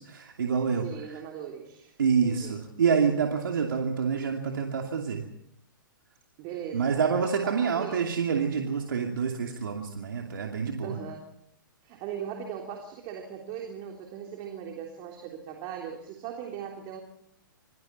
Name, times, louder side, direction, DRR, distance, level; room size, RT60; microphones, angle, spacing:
voice 1, 0.0-0.9 2.0-5.2 6.7-11.0, right 6 dB, 75° right, 2 dB, 2.7 m, -27 dB
voice 2, 0.8-1.9 2.2-2.6 6.4-7.0 7.4-8.2 10.8-11.3 11.8-17.0, right 8 dB, 35° right, 2 dB, 3.5 m, -39 dB
27.5 x 22.5 x 4.4 m, 0.71 s
hypercardioid pair, 130°, 11 cm